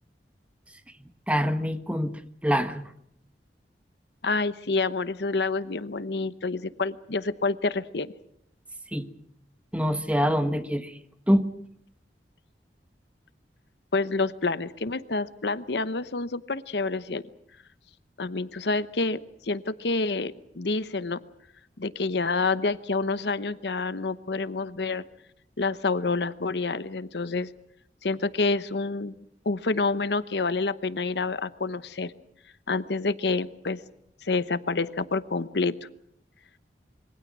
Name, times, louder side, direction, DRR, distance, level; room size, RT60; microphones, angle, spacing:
voice 1, 1.0-2.9 8.9-9.1 9.7-11.0 11.3-11.5, equal, 5° right, 9 dB, 1.3 m, -25 dB
voice 2, 4.2-8.1 13.9-17.2 18.2-21.2 21.8-25.0 25.6-27.5 28.0-29.2 29.4-32.1 32.7-33.8 34.2-35.8, left 3 dB, 70° left, 14 dB, 0.9 m, -28 dB
26.5 x 23.0 x 6.2 m, 0.72 s
head